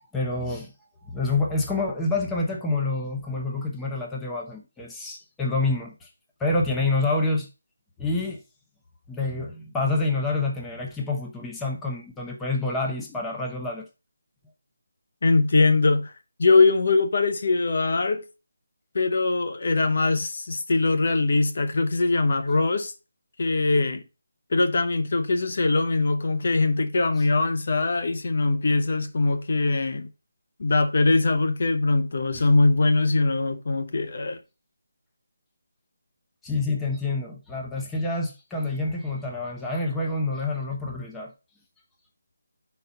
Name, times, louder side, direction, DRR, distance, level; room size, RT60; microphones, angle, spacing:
voice 1, 0.1-0.7 1.1-6.1 6.4-7.5 8.0-8.4 9.1-13.9 32.3-32.5 36.4-41.3, left 2 dB, 5° left, 0.8 m, -27 dB
voice 2, 15.2-16.1 16.4-18.3 18.9-22.9 23.4-24.0 24.5-30.1 30.6-34.4 36.7-36.8, left 3 dB, 50° left, 0.8 m, -22 dB
5.6 x 4.2 x 5.2 m
figure-of-eight pair, 170°, 0 cm